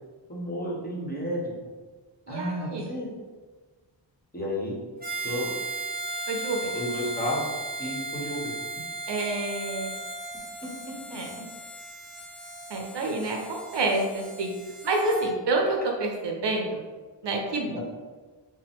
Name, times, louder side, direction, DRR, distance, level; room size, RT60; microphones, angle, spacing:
voice 1, 0.3-1.5 2.3-3.1 4.3-4.8 5.2-5.5 6.7-8.5 15.1-15.2 17.7-17.8, equal, 20° left, -5 dB, 1.0 m, -32 dB
voice 2, 2.3-2.9 6.3-6.7 9.1-10.0 11.1-11.3 12.7-14.5 14.8-16.8 17.2-17.8, right 2 dB, 65° right, 1 dB, 0.7 m, -28 dB
Harmonica, 5.0-15.3, right 3 dB, 20° right, 0.7 m, -36 dB
5.2 x 2.1 x 3.5 m, 1.4 s
wide cardioid pair, 130°, 46 cm